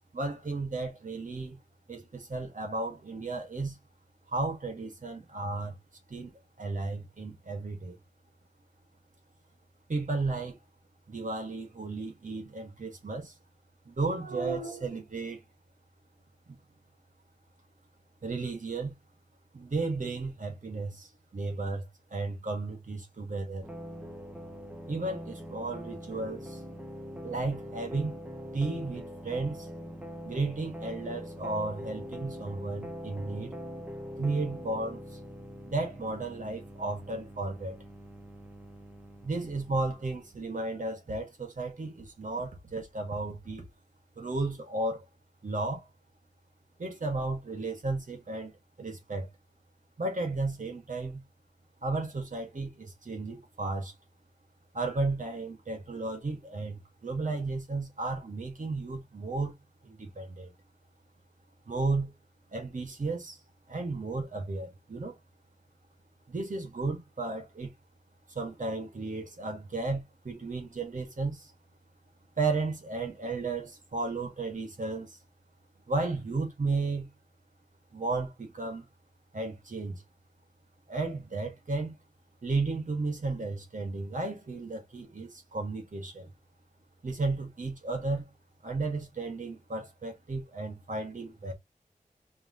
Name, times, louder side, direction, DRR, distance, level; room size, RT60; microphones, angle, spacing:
voice 1, 0.1-1.6 1.9-3.8 4.3-5.8 6.1-8.0 9.9-10.6 11.1-13.3 13.9-15.4 16.5-16.6 18.2-18.9 19.5-23.7 24.9-26.6 27.2-28.2 28.5-29.7 30.2-33.5 34.2-35.2 35.7-37.8 39.2-43.7 44.2-45.0 45.4-45.9 46.8-48.5 48.8-49.3 50.0-51.2 51.8-53.9 54.7-59.6 59.8-60.5 61.7-62.1 62.5-63.4 63.7-65.2 66.3-67.7 68.4-71.5 72.4-75.2 75.9-77.1 77.9-78.9 79.3-80.0 80.9-82.0 82.4-86.3 87.0-88.3 88.6-91.5, right 3 dB, 65° right, 1.8 m, -34 dB
sound 1, 23.6-40.4, equal, 10° right, 1.2 m, -43 dB
4.9 x 3.2 x 3.0 m
wide cardioid pair, 80°, 14 cm